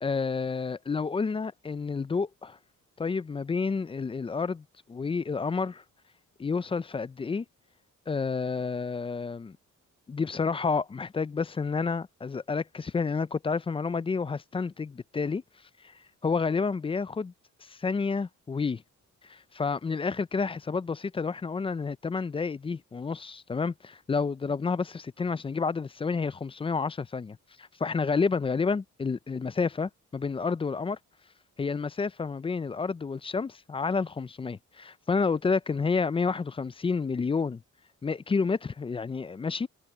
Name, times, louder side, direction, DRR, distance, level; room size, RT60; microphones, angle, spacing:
voice 1, 0.0-2.6 3.0-5.8 6.4-7.5 8.1-9.6 10.1-15.4 15.8-15.9 16.2-17.3 17.6-18.8 19.3-31.0 31.6-37.6 38.0-39.7, left 4 dB, 20° left, 0.3 m, -30 dB
wide cardioid pair, 145°, 31 cm